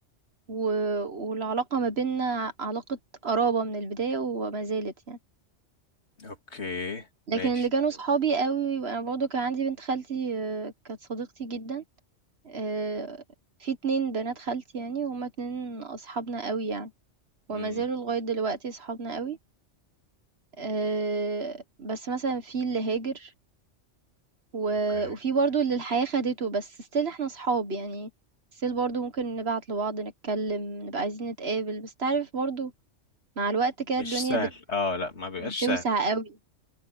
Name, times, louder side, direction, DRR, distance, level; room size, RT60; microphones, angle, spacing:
voice 1, 0.5-5.2 7.3-11.8 12.5-13.2 13.6-16.9 17.5-19.4 20.6-23.3 24.5-28.1 28.6-32.7 33.4-34.5 35.4-36.4, right 4 dB, 60° right, 1.7 m, -29 dB
voice 2, 6.2-7.6 17.5-17.8 24.9-25.2 34.0-35.8, left 3 dB, 65° left, 3.0 m, -32 dB
omnidirectional pair, 1.2 m